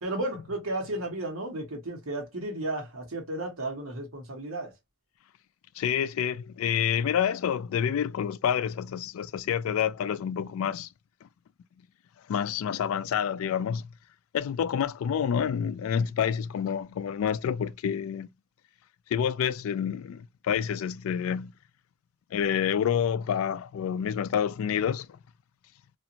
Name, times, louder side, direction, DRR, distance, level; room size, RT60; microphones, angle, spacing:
voice 1, 0.0-4.7, right 1 dB, 75° right, 1.1 m, -33 dB
voice 2, 5.8-10.9 12.3-13.9 14.3-18.3 19.1-21.5 22.3-25.1, left 8 dB, 70° left, 0.3 m, -28 dB
2.5 x 2.5 x 2.8 m
head